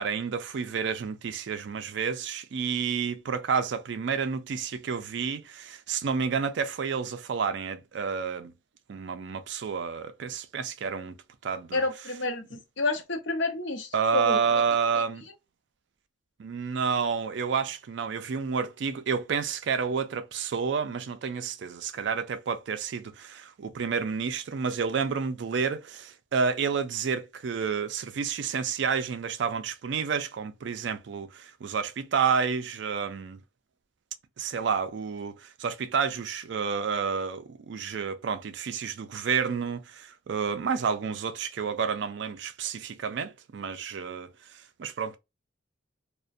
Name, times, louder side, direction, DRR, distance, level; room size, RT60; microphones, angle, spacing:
voice 1, 0.0-8.5 8.9-11.2 11.4-12.1 12.5-12.6 13.9-15.3 16.4-33.4 34.4-45.2, right 6 dB, 60° right, 0.4 m, -30 dB
voice 2, 11.7-14.4, left 2 dB, 65° left, 0.7 m, -29 dB
2.4 x 2.1 x 2.5 m
head